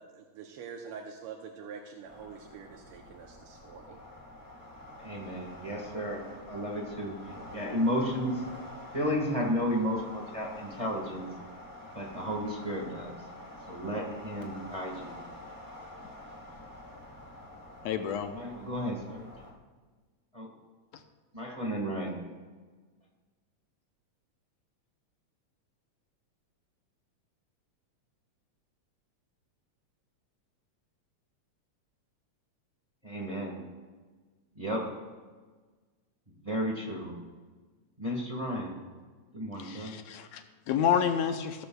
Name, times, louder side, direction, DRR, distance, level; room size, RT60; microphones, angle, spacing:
voice 1, 0.0-4.0, right 6 dB, 70° right, 3 dB, 1.4 m, -45 dB
sound 1, 2.1-19.5, left 1 dB, 10° left, 1.2 m, -47 dB
voice 2, 5.0-7.2 7.5-8.4 8.9-11.3 11.9-13.2 13.7-15.2 18.3-19.3 20.3-20.5 21.3-22.2 33.0-33.6 34.5-34.9 36.4-37.1 38.0-38.7 39.3-39.9, equal, 20° right, 0 dB, 0.9 m, -33 dB
voice 3, 17.9-18.3 39.6-41.7, left 8 dB, 75° left, 7 dB, 1.9 m, -29 dB
16.5 x 13.5 x 2.3 m, 1.4 s
omnidirectional pair, 3.4 m